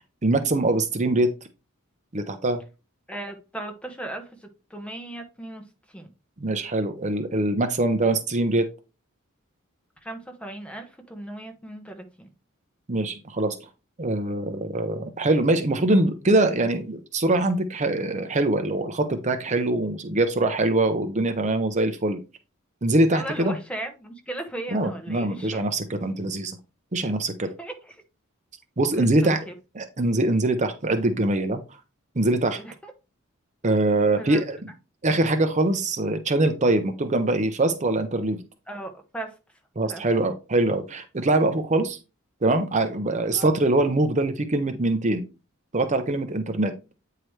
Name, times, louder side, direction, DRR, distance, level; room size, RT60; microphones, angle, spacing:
voice 1, 0.2-1.3 2.1-2.6 6.4-8.7 12.9-13.6 14.0-22.2 22.8-23.5 24.7-26.6 26.9-27.5 28.8-29.4 29.8-31.6 32.2-32.6 33.6-34.6 35.0-38.4 39.8-42.0 42.4-45.2 45.7-46.7, right 2 dB, 35° right, 8 dB, 0.7 m, -23 dB
voice 2, 3.1-6.1 10.0-12.3 23.1-25.6 27.6-28.0 28.9-29.5 32.5-32.9 34.2-34.4 38.7-39.4 39.9-40.0 43.3-43.5, right 1 dB, 5° left, 5 dB, 1.1 m, -37 dB
8.8 x 4.7 x 3.2 m, 0.30 s
head